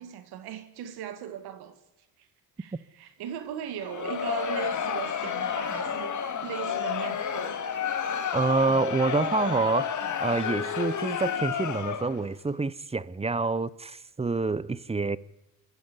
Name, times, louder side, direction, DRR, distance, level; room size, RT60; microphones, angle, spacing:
voice 1, 0.0-1.8 2.6-7.6, right 9 dB, 85° right, 2.2 m, -38 dB
Crowd, 3.8-12.3, left 7 dB, 50° left, 2.2 m, -31 dB
voice 2, 8.3-9.9 10.2-15.2, right 3 dB, 15° right, 0.8 m, -27 dB
25.0 x 13.0 x 9.9 m
cardioid pair, 90°, 37 cm